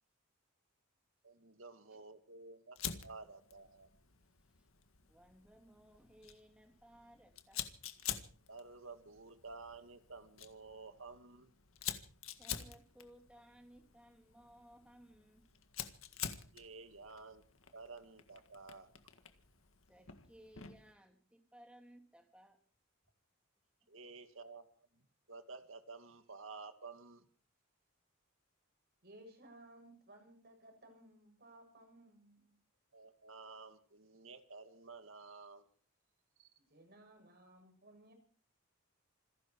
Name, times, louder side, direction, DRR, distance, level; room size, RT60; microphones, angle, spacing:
voice 1, 1.2-3.9 8.5-11.5 16.5-17.4 17.7-18.9 23.9-24.8 25.3-27.2 32.9-35.6 36.4-36.5, right 4 dB, 75° right, 8 dB, 2.2 m, -52 dB
Fire, 2.7-20.9, left 9 dB, 75° left, 1.8 m, -48 dB
voice 2, 5.0-7.7 12.4-15.5 19.9-22.6, right 1 dB, 5° right, 4 dB, 3.0 m, -61 dB
voice 3, 29.0-32.5 36.7-38.1, right 1 dB, 50° right, 4 dB, 7.0 m, -59 dB
27.0 x 11.0 x 4.7 m, 0.43 s
head